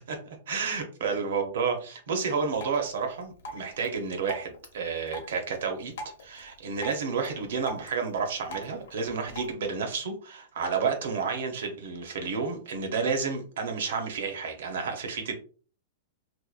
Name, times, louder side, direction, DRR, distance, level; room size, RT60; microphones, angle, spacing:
voice 1, 0.5-5.9 6.2-15.3, right 5 dB, 60° right, 4 dB, 0.7 m, -30 dB
Drip, 2.5-9.5, equal, 70° left, 0.7 m, -45 dB
2.8 x 2.2 x 2.3 m, 0.40 s
supercardioid pair, 180°, 0 cm